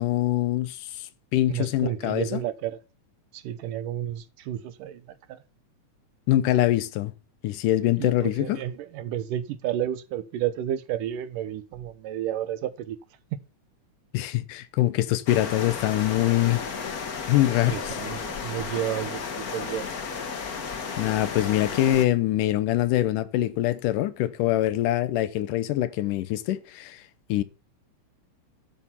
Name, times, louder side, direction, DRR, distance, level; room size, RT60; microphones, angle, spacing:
voice 1, 0.0-2.4 6.3-7.1 7.4-8.6 14.1-16.6 17.3-18.0 21.0-27.0 27.3-27.4, left 14 dB, 85° left, 2.4 m, -24 dB
voice 2, 1.5-2.8 3.3-5.0 5.3-5.4 8.0-13.0 13.3-13.4 17.7-19.9, right 11 dB, 85° right, 2.6 m, -31 dB
sound 1, 15.3-22.1, left 5 dB, 55° left, 1.0 m, -33 dB
11.5 x 7.4 x 5.8 m
omnidirectional pair, 3.7 m